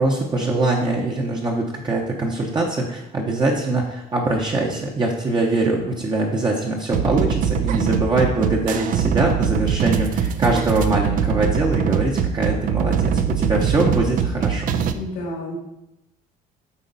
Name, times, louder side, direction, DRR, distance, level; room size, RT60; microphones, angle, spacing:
voice 1, 0.0-14.8, right 2 dB, 25° right, -1 dB, 0.9 m, -23 dB
sound 1, 6.9-14.9, right 7 dB, 55° right, 0.5 m, -22 dB
voice 2, 14.9-15.6, left 1 dB, 85° left, -1 dB, 2.3 m, -31 dB
8.3 x 4.4 x 4.0 m, 0.89 s
cardioid pair, 120°, 17 cm